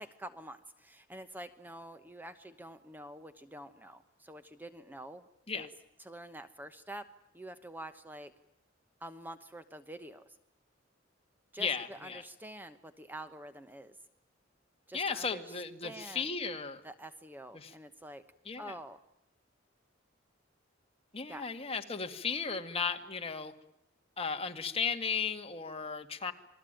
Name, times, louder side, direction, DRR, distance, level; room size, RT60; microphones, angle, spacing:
voice 1, 0.0-5.2 5.5-5.7 6.0-7.0 7.3-8.3 9.0-10.4 11.5-14.0 14.9-15.6 15.8-16.3 16.8-18.2 18.6-19.0 21.3-21.4, right 1 dB, 10° right, 10 dB, 1.1 m, -47 dB
voice 2, 11.6-12.2 14.9-16.8 17.5-17.7 18.5-18.7 21.1-23.5 24.2-26.3, left 5 dB, 30° left, 6 dB, 2.1 m, -35 dB
28.0 x 21.0 x 9.1 m, 0.81 s
head